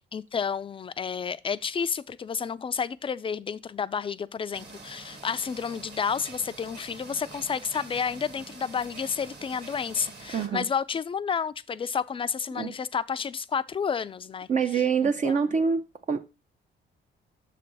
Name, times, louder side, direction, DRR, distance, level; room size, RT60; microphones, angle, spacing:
voice 1, 0.1-14.5 15.0-15.4, left 6 dB, 25° left, 0.4 m, -30 dB
sound 1, 4.5-10.5, right 3 dB, 55° right, 2.0 m, -46 dB
voice 2, 10.3-10.7 12.5-12.7 14.5-16.2, right 6 dB, 40° right, 0.5 m, -25 dB
6.7 x 3.4 x 5.3 m
cardioid pair, 90°, 20 cm